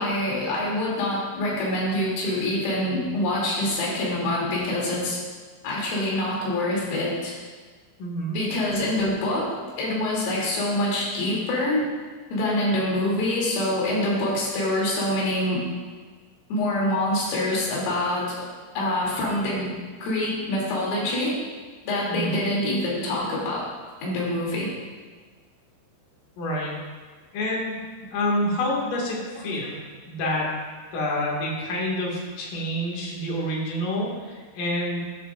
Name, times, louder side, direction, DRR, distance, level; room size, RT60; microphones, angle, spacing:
voice 1, 0.0-5.2 5.6-7.3 8.3-11.9 12.3-15.6 16.5-18.5 18.8-19.7 20.0-21.4 21.9-23.6 24.0-24.7, left 1 dB, 85° left, -5 dB, 5.6 m, -25 dB
voice 2, 8.0-8.4 22.1-22.4 26.4-26.8 27.3-27.8 28.1-29.8 30.1-30.5 30.9-35.0, left 1 dB, 55° left, -3 dB, 3.1 m, -27 dB
12.0 x 12.0 x 2.5 m, 1.5 s
omnidirectional pair, 5.7 m